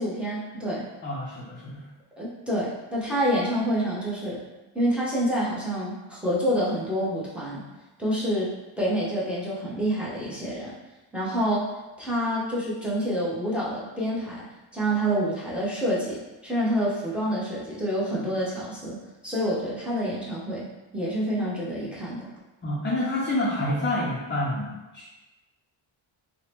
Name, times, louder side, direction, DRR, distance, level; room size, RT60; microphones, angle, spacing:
voice 1, 0.0-0.9 2.2-4.4 4.7-7.6 8.0-8.5 8.8-10.7 11.1-11.7 12.0-14.5 14.7-19.0 19.2-20.6 20.9-22.3, equal, ahead, -8 dB, 0.7 m, -27 dB
voice 2, 1.0-1.9 22.6-25.1, left 1 dB, 25° left, -5 dB, 0.3 m, -28 dB
2.7 x 2.1 x 3.2 m, 1.1 s
wide cardioid pair, 125°, 50 cm